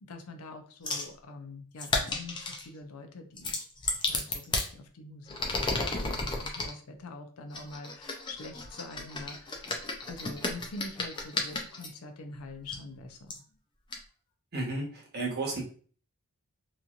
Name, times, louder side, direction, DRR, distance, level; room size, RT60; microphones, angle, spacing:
voice 1, 0.0-3.5 3.9-9.8 10.0-13.4, left 2 dB, 75° left, 5 dB, 0.5 m, -45 dB
sound 1, 0.9-1.1 1.8-2.7 3.4-4.7 5.3-6.7 7.5-11.9 12.7-12.8 13.3-13.4 13.9-14.0, left 3 dB, 20° left, 0.4 m, -33 dB
voice 2, 14.5-15.6, right 2 dB, 45° right, -2 dB, 0.9 m, -33 dB
3.0 x 2.6 x 2.4 m, 0.42 s
head